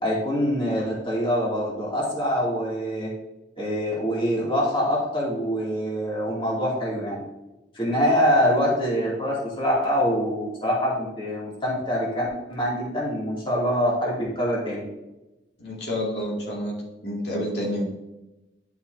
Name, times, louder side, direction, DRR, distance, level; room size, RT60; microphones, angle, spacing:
voice 1, 0.0-3.1 3.6-7.2 7.7-14.8, equal, 30° left, -5 dB, 2.4 m, -24 dB
voice 2, 15.6-16.7 17.0-17.8, equal, 70° left, -4 dB, 2.2 m, -29 dB
11.0 x 5.7 x 2.7 m, 0.98 s
head